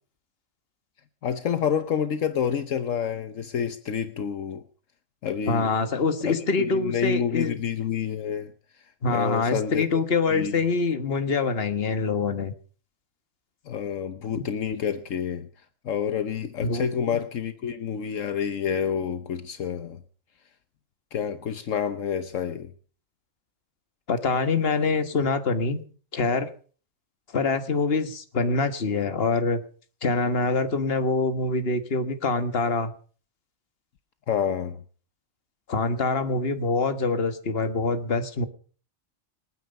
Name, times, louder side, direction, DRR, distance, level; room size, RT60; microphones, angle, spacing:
voice 1, 1.2-4.6 5.2-5.7 6.2-8.5 9.1-9.8 10.3-10.6 13.7-15.5 15.8-20.0 21.1-22.7 34.3-34.8, left 8 dB, 75° left, 10 dB, 1.3 m, -28 dB
voice 2, 5.5-7.6 9.0-12.5 16.6-17.2 24.1-25.8 26.1-26.5 27.3-29.6 30.0-32.9 35.7-38.5, left 3 dB, 50° left, 9 dB, 1.7 m, -25 dB
27.0 x 9.3 x 5.3 m, 0.42 s
omnidirectional pair, 1.4 m